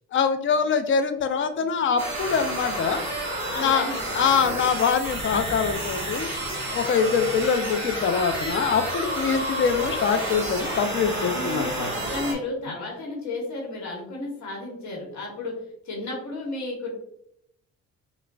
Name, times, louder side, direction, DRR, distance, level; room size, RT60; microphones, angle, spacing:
voice 1, 0.1-3.0 3.6-6.3 6.7-11.9, left 6 dB, 40° left, 8 dB, 0.4 m, -24 dB
sound 1, 2.0-12.3, right 1 dB, 35° right, 1.3 m, -30 dB
voice 2, 3.5-4.0 4.4-4.5 11.0-15.5 15.8-16.9, left 2 dB, 70° left, -1 dB, 1.0 m, -33 dB
4.6 x 2.1 x 2.2 m, 0.74 s
cardioid pair, 90°, 30 cm